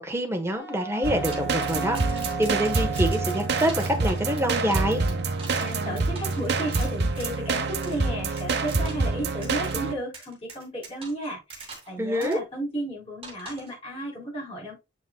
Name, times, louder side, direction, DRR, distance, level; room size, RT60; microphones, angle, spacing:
voice 1, 0.0-5.0 12.0-12.4, equal, 15° right, 1.3 m, -26 dB
Wind instrument woodwind instrument, 0.5-6.0, right 5 dB, 15° left, 2.4 m, -37 dB
sound 1, 1.0-9.9, right 3 dB, 60° right, 1.0 m, -27 dB
sound 2, 1.3-7.4 7.8-8.0 8.4-9.1 9.4-9.7 10.1-11.9 12.2-12.4 13.2-13.7, right 4 dB, 30° right, 2.5 m, -42 dB
voice 2, 5.6-14.7, right 1 dB, 30° left, 4.2 m, -34 dB
7.7 x 6.2 x 2.3 m
head